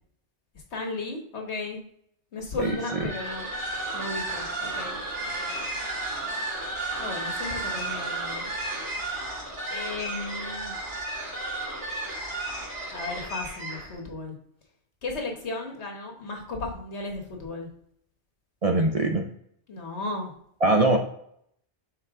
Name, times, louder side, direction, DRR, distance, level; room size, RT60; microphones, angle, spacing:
voice 1, 0.7-1.8 2.3-3.5 3.9-5.6 7.0-8.5 9.7-10.7 12.9-14.4 15.0-17.7 19.7-20.3, left 3 dB, 75° left, 2 dB, 1.5 m, -35 dB
sound 1, 2.6-14.0, right 2 dB, 85° right, 2.6 m, -33 dB
voice 2, 18.6-19.3 20.6-21.0, right 2 dB, 40° right, 2 dB, 0.6 m, -21 dB
6.6 x 4.1 x 3.6 m, 0.69 s
omnidirectional pair, 1.1 m